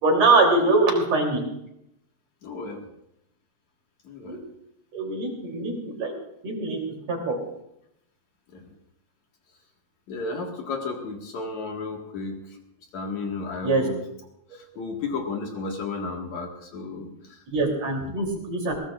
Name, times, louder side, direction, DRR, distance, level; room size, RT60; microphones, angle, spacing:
voice 1, 0.0-1.4 4.3-4.4 4.9-6.1 6.4-6.8 7.1-7.4 13.6-13.9 17.5-18.7, right 3 dB, 40° right, 1 dB, 4.0 m, -22 dB
voice 2, 2.4-2.8 4.0-4.4 8.5-8.7 10.1-12.5 12.9-14.0 14.5-17.4, left 3 dB, 50° left, 1 dB, 2.6 m, -33 dB
21.5 x 18.5 x 2.5 m, 0.79 s
omnidirectional pair, 4.8 m